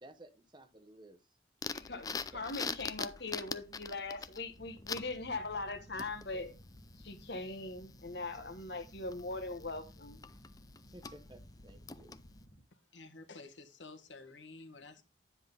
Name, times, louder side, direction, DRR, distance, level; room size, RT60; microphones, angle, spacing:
voice 1, 0.0-1.2 2.1-2.7 10.9-12.2, right 1 dB, 25° right, 0.9 m, -56 dB
sound 1, 1.6-12.4, left 5 dB, 20° left, 0.4 m, -45 dB
voice 2, 1.7-6.5 7.0-10.2, left 3 dB, 60° left, 1.4 m, -41 dB
sound 2, 4.5-12.6, equal, 40° left, 1.8 m, -58 dB
voice 3, 12.9-15.0, left 3 dB, 80° left, 1.6 m, -51 dB
10.0 x 5.7 x 3.9 m
head